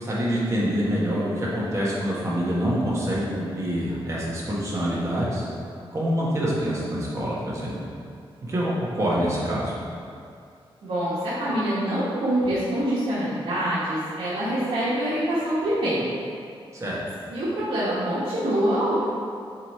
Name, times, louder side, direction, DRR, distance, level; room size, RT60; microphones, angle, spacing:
voice 1, 0.0-5.4 5.9-7.7 8.4-9.7 16.7-17.0, equal, 30° right, -6 dB, 1.4 m, -26 dB
voice 2, 10.8-16.1 17.3-19.0, right 1 dB, 80° right, -11 dB, 1.4 m, -25 dB
7.0 x 3.2 x 4.3 m, 2.3 s
wide cardioid pair, 140°, 10 cm